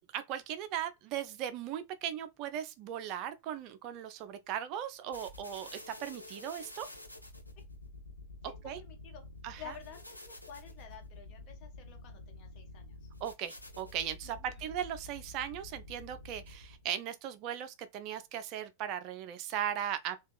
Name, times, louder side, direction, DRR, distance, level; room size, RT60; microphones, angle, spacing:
voice 1, 0.1-6.9 8.4-8.8 9.4-9.7 13.2-20.2, right 10 dB, 40° right, 0.3 m, -38 dB
sound 1, 5.1-16.9, left 2 dB, 85° left, 0.5 m, -49 dB
voice 2, 8.4-9.2 9.6-13.1 14.2-14.7, left 7 dB, 40° left, 1.1 m, -51 dB
3.5 x 2.2 x 2.3 m
figure-of-eight pair, 90°, 0 cm